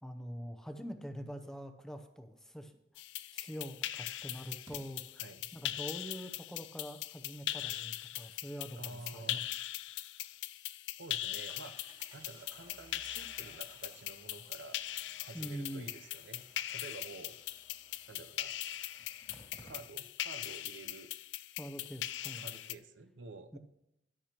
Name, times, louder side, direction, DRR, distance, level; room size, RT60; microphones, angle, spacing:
voice 1, 0.0-2.7 3.3-5.2 5.5-9.4 15.3-15.9 21.6-22.5 23.5-23.6, equal, 5° left, 6 dB, 0.7 m, -44 dB
sound 1, 3.0-22.8, left 14 dB, 70° left, 0.3 m, -41 dB
Engine starting, 3.2-3.3 4.7-4.8 9.9-10.0 10.3-10.4 11.5-20.3 20.6-20.7 20.9-21.0, right 1 dB, 25° right, 2.3 m, -60 dB
voice 2, 5.2-5.5 8.8-9.5 11.0-11.8 12.1-14.8 15.2-17.4 18.1-18.5 19.6-21.1 22.3-23.6, right 3 dB, 75° right, 11 dB, 0.7 m, -50 dB
13.5 x 10.5 x 3.0 m, 0.85 s
head